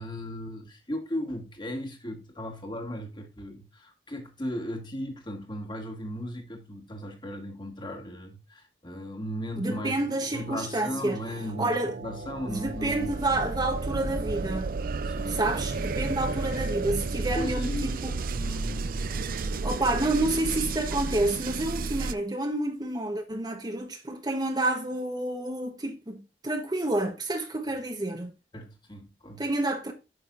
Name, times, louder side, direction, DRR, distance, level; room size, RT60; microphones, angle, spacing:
voice 1, 0.0-9.9 10.3-13.4 15.0-15.6 17.3-19.7 28.5-29.4, equal, 25° left, 1.9 m, -37 dB
voice 2, 9.6-11.2 11.6-12.0 12.4-14.7 15.3-18.2 19.6-28.3 29.4-29.9, right 2 dB, 25° right, 1.0 m, -29 dB
sound 1, 9.7-22.1, right 3 dB, 55° right, 0.5 m, -32 dB
8.7 x 6.3 x 2.5 m
head